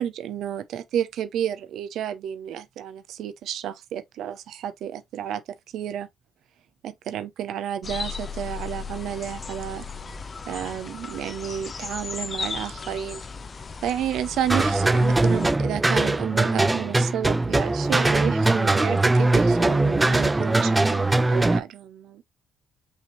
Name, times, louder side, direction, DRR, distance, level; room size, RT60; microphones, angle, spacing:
voice 1, 0.0-5.4 5.7-6.1 6.8-9.9 10.5-13.2 13.8-22.2, right 10 dB, 80° right, 0.6 m, -31 dB
sound 1, 7.8-15.5, left 5 dB, 35° left, 0.6 m, -36 dB
sound 2, 14.5-21.6, right 2 dB, 15° right, 0.4 m, -21 dB
5.6 x 2.9 x 3.1 m
cardioid pair, 90°, 0 cm